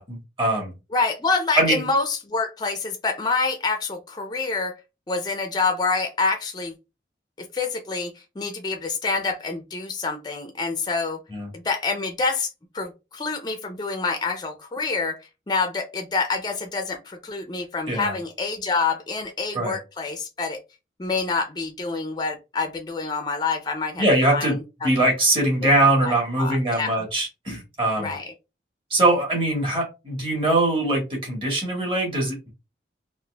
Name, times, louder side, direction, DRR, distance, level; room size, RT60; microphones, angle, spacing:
voice 1, 0.0-0.7 1.5-1.8 11.3-11.5 17.9-18.1 19.5-19.8 24.0-24.6 24.8-28.1 28.9-32.5, right 1 dB, 30° right, -1 dB, 1.4 m, -22 dB
voice 2, 0.9-4.7 5.1-6.7 7.4-11.2 11.5-12.5 12.7-20.6 21.0-24.0 24.3-24.9 26.0-27.0 28.0-28.3, left 4 dB, 25° left, 5 dB, 0.4 m, -27 dB
4.0 x 2.4 x 2.2 m, 0.27 s
head